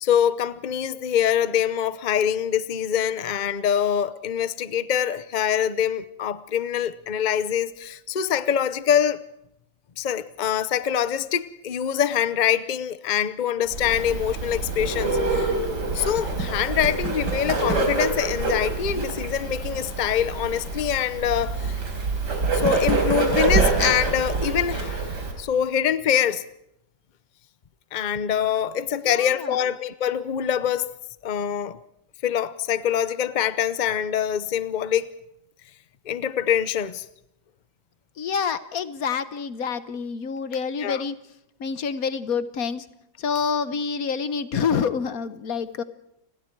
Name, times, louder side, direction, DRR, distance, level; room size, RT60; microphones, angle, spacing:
voice 1, 0.0-9.2 10.0-15.5 15.9-21.8 22.5-25.1 25.4-26.4 27.9-30.9 31.2-31.8 32.2-35.1 36.1-37.0 40.8-41.0, left 9 dB, 90° left, 0.4 m, -24 dB
Bird, 13.7-25.3, right 3 dB, 55° right, 5.0 m, -26 dB
voice 2, 29.0-29.5 38.2-41.1 41.6-42.8 43.2-45.8, left 6 dB, 50° left, 1.4 m, -27 dB
29.5 x 21.0 x 4.7 m
omnidirectional pair, 2.1 m